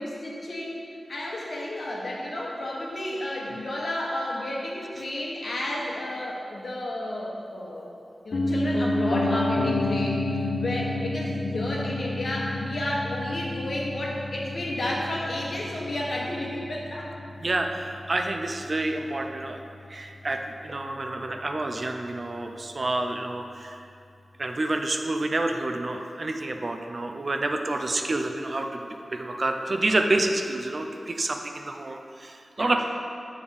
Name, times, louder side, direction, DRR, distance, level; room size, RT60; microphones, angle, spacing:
voice 1, 0.0-7.9 8.2-17.1 32.6-32.8, left 1 dB, 65° left, -3 dB, 1.3 m, -32 dB
Piano, 8.3-18.3 18.6-18.7, left 2 dB, 85° left, 0.5 m, -29 dB
voice 2, 17.4-19.6 19.9-23.8 24.4-32.8, right 2 dB, 50° right, 4 dB, 0.5 m, -28 dB
7.0 x 3.4 x 5.3 m, 2.5 s
cardioid pair, 45°, 0 cm